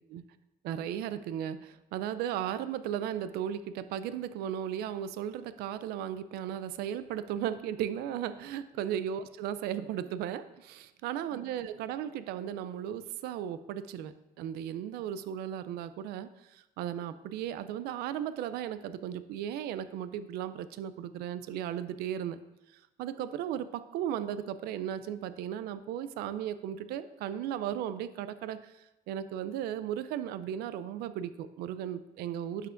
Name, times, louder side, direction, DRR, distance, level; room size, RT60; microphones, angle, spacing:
voice 1, 0.6-22.4 23.0-28.7 29.1-32.7, right 10 dB, 80° right, 13 dB, 0.4 m, -36 dB
11.5 x 5.7 x 2.5 m, 0.95 s
cardioid pair, 140°, 16 cm